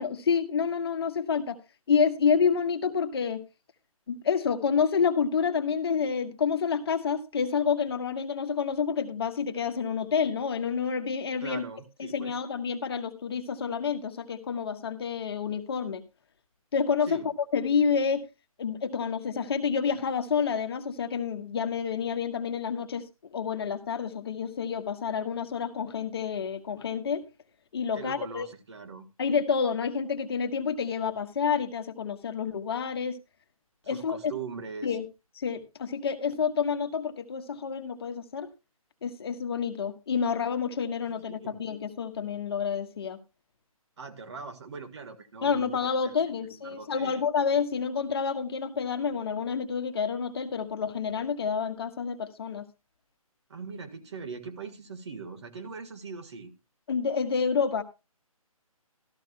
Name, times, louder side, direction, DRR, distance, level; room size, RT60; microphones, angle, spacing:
voice 1, 0.0-1.6 1.9-3.4 4.1-11.6 12.0-16.0 16.7-17.2 17.5-18.3 18.6-23.0 23.3-27.2 27.7-28.5 29.2-33.2 33.9-34.2 34.8-35.0 35.4-38.5 39.0-43.2 45.4-52.7 56.9-57.8, left 6 dB, 45° left, 1.2 m, -28 dB
voice 2, 11.4-12.4 17.0-17.3 27.9-29.1 33.8-35.0 41.1-41.6 44.0-47.2 53.5-56.5, right 5 dB, 50° right, 1.7 m, -41 dB
13.5 x 13.5 x 2.3 m
figure-of-eight pair, 150°, 19 cm